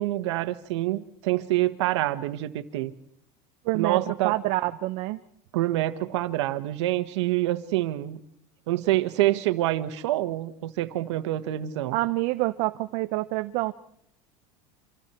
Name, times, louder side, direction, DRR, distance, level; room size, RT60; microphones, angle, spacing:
voice 1, 0.0-2.9 3.7-4.3 5.5-8.2 8.7-12.0, right 15 dB, 85° right, 10 dB, 1.5 m, -26 dB
voice 2, 3.6-5.2 11.9-13.7, right 19 dB, 60° right, 9 dB, 0.8 m, -27 dB
29.0 x 26.5 x 4.5 m, 0.70 s
supercardioid pair, 140°, 14 cm